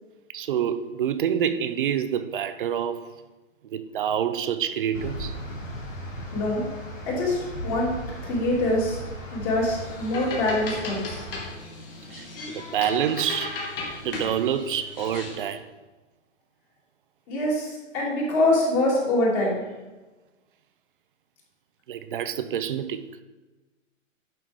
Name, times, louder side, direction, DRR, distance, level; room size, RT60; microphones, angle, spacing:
voice 1, 0.3-3.1 3.6-5.4 12.1-13.6 14.0-15.6 21.9-23.0, right 9 dB, 40° right, 0.6 m, -27 dB
sound 1, 4.9-11.5, equal, 80° left, 3.1 m, -37 dB
voice 2, 6.3-6.6 7.1-7.9 8.3-9.0 9.3-11.2 17.3-19.6, left 1 dB, 30° left, 3.0 m, -24 dB
sound 2, 9.8-15.5, left 3 dB, 45° left, 2.7 m, -36 dB
11.0 x 5.8 x 3.7 m
hypercardioid pair, 140°, 39 cm